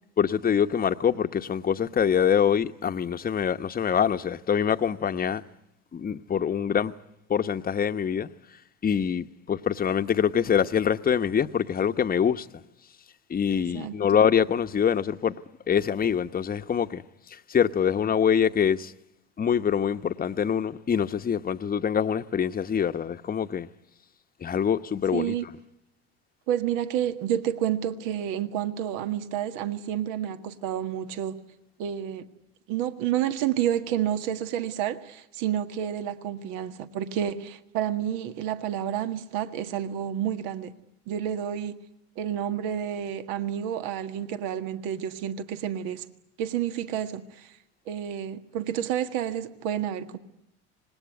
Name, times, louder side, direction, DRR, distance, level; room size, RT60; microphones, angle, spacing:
voice 1, 0.2-5.4 5.9-6.9 7.3-8.3 8.8-12.6 13.3-15.3 15.7-17.0 17.3-18.9 19.4-23.7 24.4-25.3, left 8 dB, 25° left, 1.1 m, -25 dB
voice 2, 13.5-14.0 25.1-25.5 26.5-31.4 31.8-32.3 32.7-40.7 41.1-41.8 42.2-46.1 46.4-47.5 47.9-50.2, right 10 dB, 65° right, 1.8 m, -30 dB
26.0 x 20.0 x 9.4 m
hypercardioid pair, 80°, 33 cm